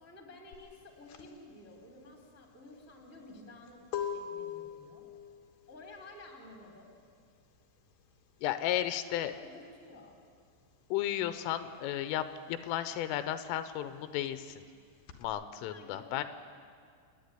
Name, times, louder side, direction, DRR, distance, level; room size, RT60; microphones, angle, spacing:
voice 1, 0.0-3.9 4.1-5.1 5.7-6.9 8.7-10.1 15.6-16.2, left 2 dB, 5° left, 1 dB, 1.7 m, -52 dB
sound 1, 0.5-10.8 11.0-15.2, left 8 dB, 75° left, 2.1 m, -44 dB
voice 2, 8.4-9.3 10.9-14.7 15.2-16.2, left 12 dB, 90° left, 11 dB, 3.4 m, -34 dB
29.0 x 10.0 x 9.9 m, 2.1 s
omnidirectional pair, 5.8 m